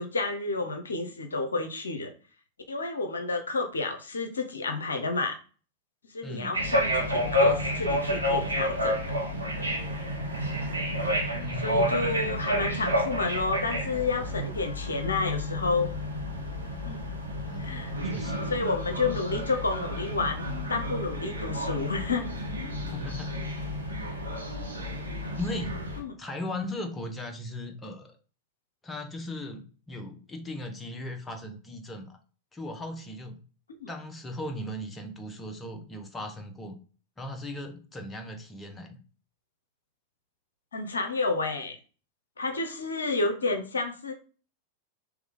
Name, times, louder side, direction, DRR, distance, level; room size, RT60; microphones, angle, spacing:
voice 1, 0.0-2.1 2.7-5.4 6.1-9.0 9.6-9.7 11.6-15.9 16.8-17.0 17.6-17.9 18.5-22.3 26.0-26.1 33.8-33.9 40.7-41.8 42.4-44.1, left 3 dB, 80° left, 6 dB, 0.6 m, -30 dB
voice 2, 6.2-6.6 11.3-12.0 17.4-18.5 22.9-23.4 25.3-25.8 26.2-28.2 28.8-32.2 32.5-33.4 33.9-36.8 37.2-39.0, left 1 dB, 15° left, 4 dB, 0.8 m, -38 dB
sound 1, 6.5-26.0, equal, 85° right, 0.8 m, -30 dB
3.4 x 3.1 x 3.6 m, 0.38 s
figure-of-eight pair, 90°, 0 cm